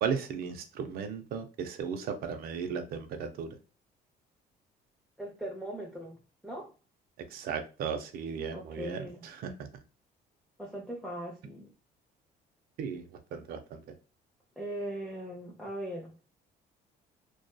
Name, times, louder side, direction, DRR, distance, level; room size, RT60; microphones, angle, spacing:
voice 1, 0.0-3.5 7.3-9.7 12.8-13.8, right 6 dB, 65° right, 6 dB, 0.5 m, -36 dB
voice 2, 5.2-6.7 8.5-9.2 10.6-11.7 14.6-16.2, right 1 dB, ahead, -2 dB, 0.5 m, -39 dB
2.5 x 2.3 x 2.2 m, 0.33 s
cardioid pair, 110°, 17 cm